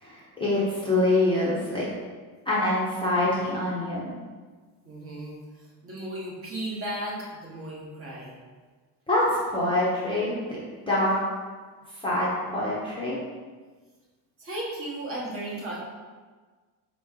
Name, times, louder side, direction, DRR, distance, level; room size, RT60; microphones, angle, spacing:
voice 1, 0.0-1.9 2.5-4.1 9.1-10.4 10.9-11.2 12.0-13.2, left 1 dB, 10° left, -8 dB, 0.7 m, -25 dB
voice 2, 4.8-8.4 14.4-15.8, right 1 dB, 30° right, -4 dB, 0.9 m, -35 dB
4.3 x 3.0 x 3.6 m, 1.4 s
cardioid pair, 160°, 44 cm